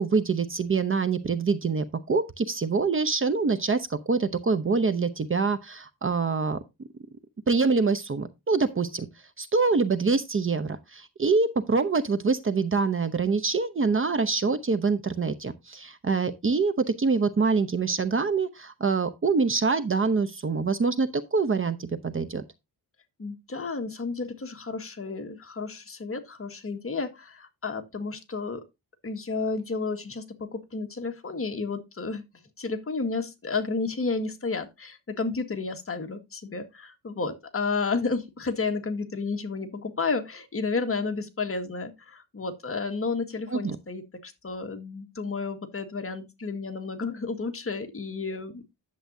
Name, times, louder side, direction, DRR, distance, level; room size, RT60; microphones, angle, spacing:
voice 1, 0.0-6.6 7.5-9.1 9.4-22.4 43.5-43.8, right 4 dB, 35° right, 0.9 m, -25 dB
voice 2, 23.2-28.6 29.0-32.2 32.6-48.6, left 4 dB, 35° left, 1.8 m, -31 dB
10.5 x 7.7 x 2.7 m
wide cardioid pair, 115°, 38 cm